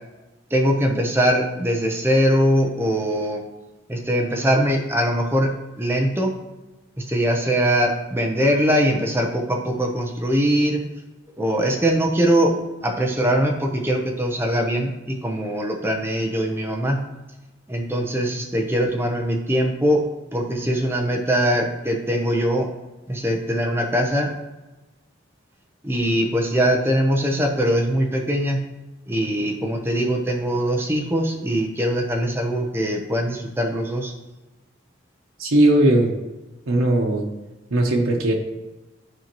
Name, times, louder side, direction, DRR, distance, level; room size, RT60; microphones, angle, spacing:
voice 1, 0.5-3.4 3.9-6.3 7.0-10.8 11.4-12.5 12.8-17.0 17.7-20.0 20.3-22.7 23.1-24.3 25.8-28.6 29.1-34.1, equal, 10° right, 1 dB, 0.7 m, -22 dB
voice 2, 35.4-36.1 36.7-37.3 37.7-38.3, right 1 dB, 85° right, 1 dB, 0.9 m, -18 dB
10.5 x 4.4 x 3.0 m, 1.1 s
head